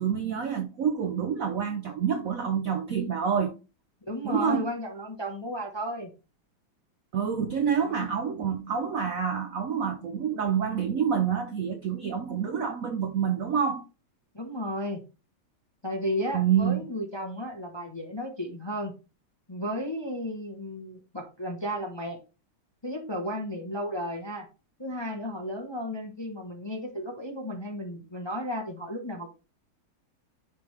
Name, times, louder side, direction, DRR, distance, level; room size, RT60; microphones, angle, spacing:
voice 1, 0.0-3.5 4.2-4.7 7.1-13.8 16.3-16.8, right 7 dB, 85° right, 0.7 m, -27 dB
voice 2, 4.0-6.1 8.0-8.1 14.3-15.0 15.8-18.9 19.5-22.2 22.8-24.5 24.8-29.3, equal, 30° left, 0.5 m, -33 dB
10.5 x 3.5 x 3.2 m
omnidirectional pair, 2.3 m